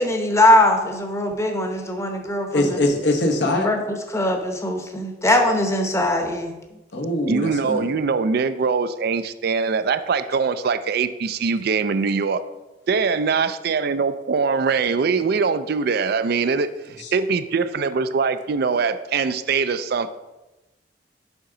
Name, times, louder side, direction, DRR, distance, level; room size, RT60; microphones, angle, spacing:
voice 1, 0.0-2.8 3.6-6.6, left 1 dB, 15° left, 4 dB, 0.8 m, -21 dB
voice 2, 2.5-3.7 6.9-7.8 17.0-17.1, left 1 dB, 70° left, 4 dB, 1.0 m, -22 dB
voice 3, 7.3-12.4 12.9-16.7 17.1-20.1, right 5 dB, 60° right, 12 dB, 0.4 m, -22 dB
7.1 x 5.6 x 3.8 m, 1.0 s
head